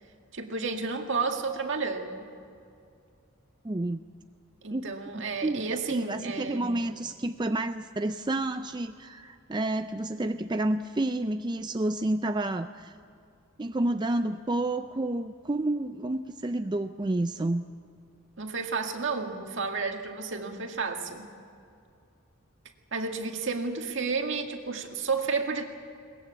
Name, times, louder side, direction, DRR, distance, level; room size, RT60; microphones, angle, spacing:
voice 1, 0.3-2.3 4.6-6.8 18.4-21.3 22.9-25.7, right 4 dB, 60° right, 4 dB, 2.0 m, -31 dB
voice 2, 3.6-4.0 4.7-12.9 13.6-17.6, right 2 dB, 20° right, 8 dB, 0.4 m, -30 dB
22.0 x 19.5 x 8.4 m, 2.4 s
head